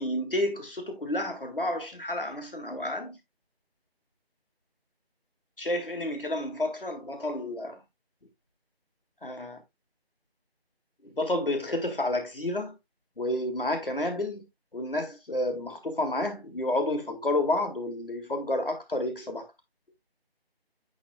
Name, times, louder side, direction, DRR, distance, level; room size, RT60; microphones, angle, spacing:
voice 1, 0.0-3.2 5.6-7.8 9.2-9.6 11.0-12.8 13.2-14.5 14.7-19.5, left 1 dB, 60° left, 2.0 m, -30 dB
10.5 x 4.2 x 2.2 m
figure-of-eight pair, 180°, 31 cm